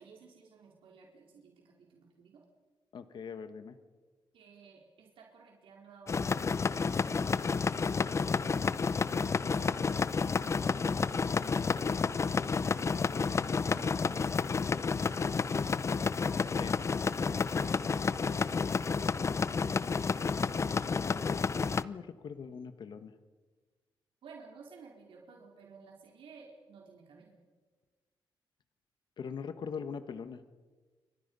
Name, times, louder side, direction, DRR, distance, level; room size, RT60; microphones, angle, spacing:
voice 1, 0.0-2.4 4.3-9.8 10.1-11.7 13.6-15.5 16.9-17.8 18.2-18.4 24.2-27.3, right 5 dB, 90° right, -1 dB, 4.5 m, -55 dB
voice 2, 2.9-3.8 16.5-16.8 20.7-23.1 29.2-30.4, left 6 dB, 60° left, 10 dB, 1.4 m, -42 dB
sound 1, 6.1-21.8, left 5 dB, 35° left, 0.6 m, -30 dB
29.5 x 24.5 x 5.6 m, 1.4 s
cardioid pair, 120°, 9 cm